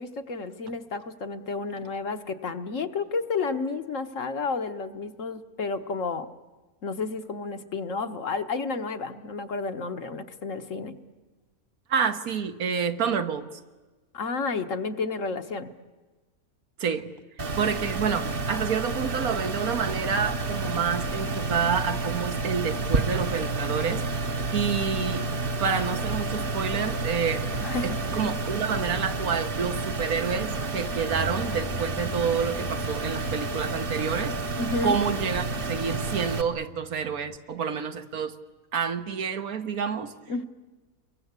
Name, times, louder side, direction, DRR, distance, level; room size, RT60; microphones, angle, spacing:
voice 1, 0.0-6.3 6.8-10.9 14.1-15.7 27.6-28.0 34.6-35.0 40.3-40.5, left 4 dB, 60° left, 7 dB, 1.5 m, -31 dB
voice 2, 11.9-13.6 16.8-17.1 17.6-24.0 24.5-25.2 25.6-27.5 27.8-34.4 34.8-38.4 38.7-40.2, right 6 dB, 75° right, 8 dB, 1.6 m, -28 dB
sound 1, 17.4-36.4, right 3 dB, 40° right, 1.2 m, -30 dB
Bass guitar, 31.1-37.4, left 2 dB, ahead, 1.0 m, -42 dB
28.5 x 22.5 x 8.2 m, 1.2 s
omnidirectional pair, 1.6 m